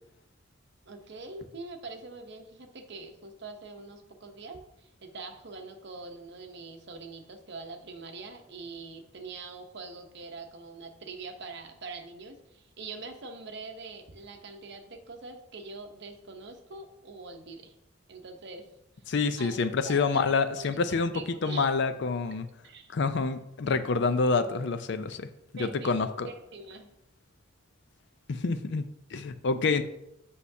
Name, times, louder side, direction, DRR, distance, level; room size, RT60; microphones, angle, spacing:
voice 1, 0.9-17.7 18.1-18.7 19.4-21.7 22.6-22.9 25.6-26.9, right 3 dB, 60° right, 5 dB, 0.9 m, -44 dB
voice 2, 19.1-21.1 21.4-22.5 22.9-25.3 25.6-26.3 28.3-29.8, left 4 dB, 65° left, 10 dB, 0.5 m, -27 dB
8.2 x 5.6 x 2.7 m, 0.83 s
head